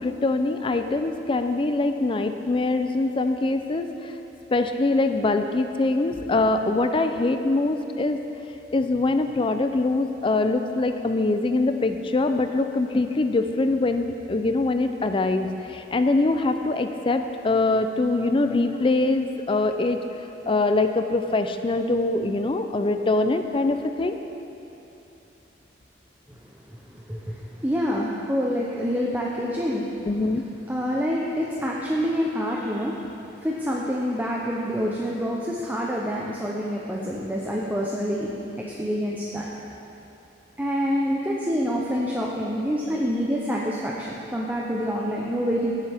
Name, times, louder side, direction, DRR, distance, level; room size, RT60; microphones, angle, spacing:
voice 1, 0.0-4.1 4.5-8.2 8.7-20.0 20.5-24.2 30.1-30.4, left 2 dB, 30° left, 7 dB, 0.4 m, -23 dB
voice 2, 26.7-29.9 30.7-33.0 33.4-39.5 40.6-45.7, equal, 10° right, -3 dB, 0.7 m, -27 dB
16.0 x 7.4 x 3.5 m, 2.9 s
head